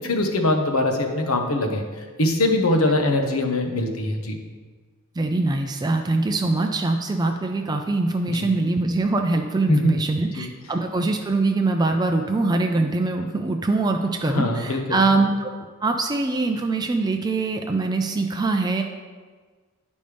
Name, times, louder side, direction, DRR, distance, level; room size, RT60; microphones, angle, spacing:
voice 1, 0.0-1.8 2.2-4.4 8.3-8.5 9.7-10.0 10.4-10.5 14.3-15.0, left 2 dB, 70° left, 3 dB, 1.0 m, -22 dB
voice 2, 5.2-15.5 15.8-18.8, right 3 dB, 20° right, 4 dB, 0.3 m, -23 dB
11.0 x 5.3 x 3.3 m, 1.5 s
head